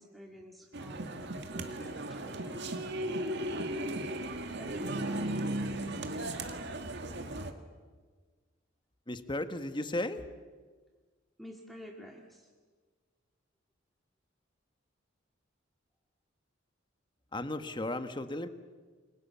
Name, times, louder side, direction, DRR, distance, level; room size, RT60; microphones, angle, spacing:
voice 1, 0.0-2.7 3.8-5.4 11.4-12.5, equal, ahead, 0 dB, 2.0 m, -49 dB
sound 1, 0.7-7.5, right 1 dB, 60° right, 2.0 m, -36 dB
voice 2, 9.1-10.3 17.3-18.5, left 1 dB, 25° left, 10 dB, 1.3 m, -35 dB
29.0 x 22.5 x 7.1 m, 1.5 s
head